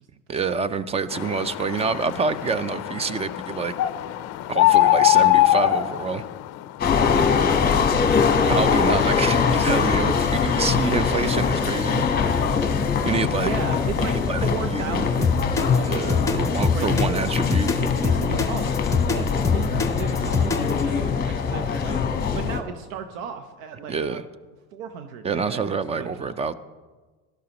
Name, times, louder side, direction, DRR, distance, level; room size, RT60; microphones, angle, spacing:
voice 1, 0.3-3.7 4.5-6.3 8.5-12.0 13.0-13.5 14.0-15.0 15.9-17.7 23.9-24.2 25.2-26.5, right 5 dB, 15° right, 15 dB, 0.4 m, -27 dB
Tawny Owl - Male, 1.1-6.7, left 15 dB, 40° left, 0.5 m, -22 dB
sound 1, 6.8-22.6, left 6 dB, 25° left, 1.2 m, -22 dB
voice 2, 13.4-15.9 16.6-17.2 17.8-18.8 19.1-19.7 20.0-22.0 22.3-24.2 24.7-25.6 25.9-26.4, right 7 dB, 80° right, 8 dB, 0.9 m, -35 dB
sound 2, 15.2-20.9, left 5 dB, 10° left, 1.0 m, -23 dB
16.5 x 12.5 x 3.0 m, 1.3 s
supercardioid pair, 105°, 39 cm